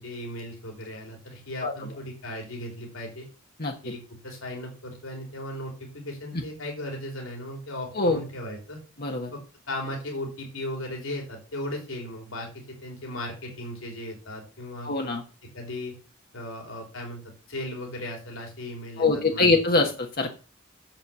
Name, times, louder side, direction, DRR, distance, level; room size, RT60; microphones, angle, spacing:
voice 1, 0.0-3.3 3.8-8.8 9.3-9.4 9.7-14.9 15.5-16.0 16.3-19.0 19.3-19.5, left 1 dB, 80° left, 0 dB, 3.6 m, -36 dB
voice 2, 9.0-9.3 14.8-15.2 19.0-20.3, left 3 dB, 50° left, 2 dB, 1.3 m, -23 dB
7.8 x 7.3 x 6.8 m, 0.35 s
head